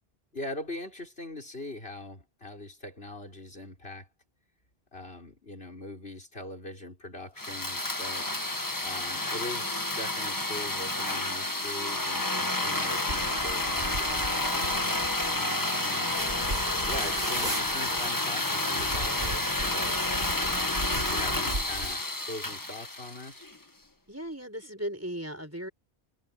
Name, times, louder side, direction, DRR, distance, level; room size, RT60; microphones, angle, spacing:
voice 1, 0.3-4.1 4.9-8.3 8.8-16.2 16.8-23.5, left 1 dB, 70° left, 6.0 m, -42 dB
sound 1, 7.4-23.6, left 1 dB, 20° left, 1.5 m, -30 dB
sound 2, 13.1-15.4 16.2-18.1 18.8-22.0, right 1 dB, 60° right, 6.4 m, -37 dB
voice 2, 24.1-25.7, equal, 15° right, 5.0 m, -36 dB
omnidirectional pair, 1.1 m